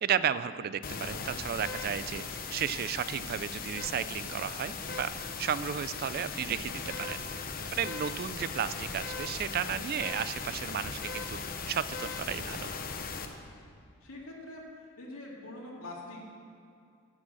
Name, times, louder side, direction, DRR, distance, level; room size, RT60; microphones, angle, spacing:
voice 1, 0.0-2.2 2.5-7.2 7.7-11.4 11.6-12.7, right 8 dB, 45° right, 15 dB, 0.3 m, -33 dB
sound 1, 0.8-13.3, left 4 dB, 45° left, 0.8 m, -38 dB
voice 2, 14.0-14.6 15.0-16.2, left 2 dB, 85° left, -4 dB, 2.4 m, -44 dB
11.5 x 6.2 x 7.6 m, 2.4 s
head